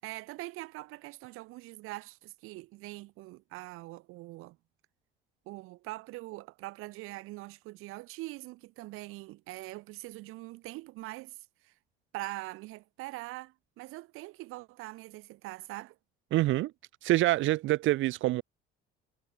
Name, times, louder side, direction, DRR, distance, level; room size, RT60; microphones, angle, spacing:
voice 1, 0.0-4.6 5.5-11.4 11.6-11.7 12.1-16.0, right 20 dB, 80° right, 6.5 m, -43 dB
voice 2, 16.3-16.7 17.0-18.4, right 16 dB, 65° right, 3.0 m, -26 dB
cardioid pair, 160°, 21 cm